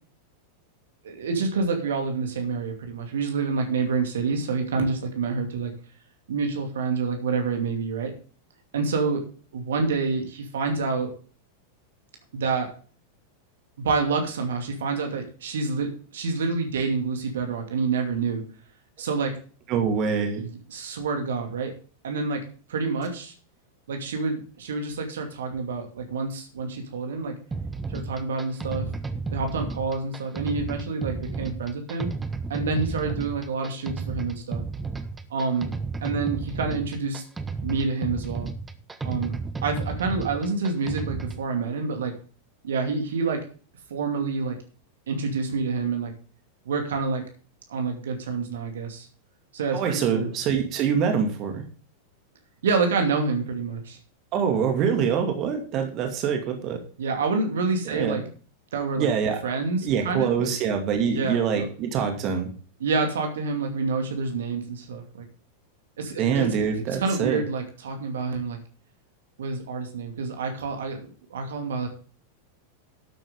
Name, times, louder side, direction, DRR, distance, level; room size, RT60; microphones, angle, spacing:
voice 1, 1.0-5.7 6.3-8.1 8.7-9.2 9.5-11.1 12.3-12.7 13.8-18.4 19.0-19.3 20.4-21.7 22.0-22.4 22.7-23.3 23.9-27.3 27.9-28.9 29.3-32.1 32.5-34.6 35.3-35.7 36.0-37.2 37.6-38.5 39.0-39.4 39.6-42.1 42.6-43.4 43.9-44.6 45.1-46.1 46.7-47.2 47.7-49.1 49.5-50.3 52.6-54.0 57.0-58.2 58.7-59.1 59.4-60.5 61.1-61.7 62.8-65.3 66.0-66.5 66.9-68.6 69.4-71.0 71.3-71.9, right 4 dB, 60° right, 4 dB, 2.5 m, -27 dB
voice 2, 19.7-20.4 49.7-51.7 54.3-56.8 57.9-58.2 59.0-59.4 59.8-62.5 66.2-67.4, right 7 dB, 35° right, 5 dB, 2.4 m, -25 dB
sound 1, 27.5-41.4, right 4 dB, 15° right, 1.0 m, -33 dB
12.5 x 8.8 x 3.7 m, 0.40 s
figure-of-eight pair, 90°, 0 cm